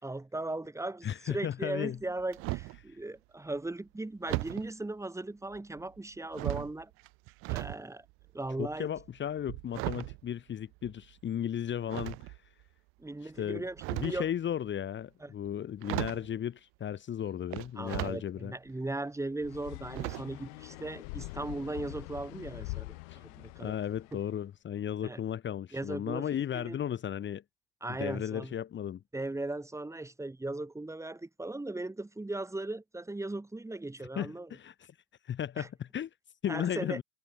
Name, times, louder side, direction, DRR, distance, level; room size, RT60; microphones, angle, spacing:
voice 1, 0.0-6.9 7.5-8.1 8.3-8.9 13.0-14.3 15.2-15.3 17.8-23.8 24.1-24.2 25.0-25.2 25.7-26.8 27.8-28.6 29.1-34.5 35.6-35.7 36.5-37.0, right 2 dB, 5° right, 3.5 m, -38 dB
voice 2, 1.0-2.0 2.9-3.0 8.6-12.4 13.2-13.6 13.9-18.5 23.1-23.2 23.6-27.4 27.9-29.0 34.2-34.9 35.2-36.1 36.4-37.0, left 9 dB, 30° left, 2.1 m, -35 dB
sound 1, 1.9-2.8 4.3-4.7 5.5-6.0 6.3-7.8 8.1-11.1 11.9-12.6 13.6-14.3 15.4-15.5 15.8-16.3 17.5-18.2 18.7-18.8 19.9-20.5 20.7-20.9 21.2-21.3, right 27 dB, 35° right, 0.4 m, -37 dB
sound 2, 19.4-24.3, left 32 dB, 55° left, 2.1 m, -44 dB
hypercardioid pair, 90°, 40 cm